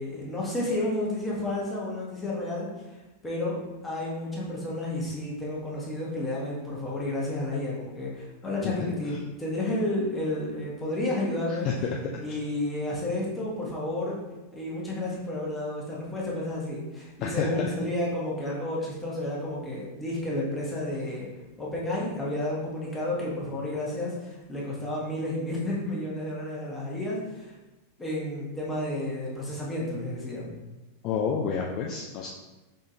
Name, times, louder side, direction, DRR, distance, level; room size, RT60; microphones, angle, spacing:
voice 1, 0.0-11.7 12.2-14.2 14.5-21.3 21.6-27.5 28.0-30.5, left 1 dB, 15° left, -5 dB, 1.4 m, -31 dB
voice 2, 31.0-32.3, left 7 dB, 40° left, -1 dB, 0.4 m, -29 dB
5.1 x 3.6 x 2.8 m, 1.1 s
figure-of-eight pair, 90°, 0 cm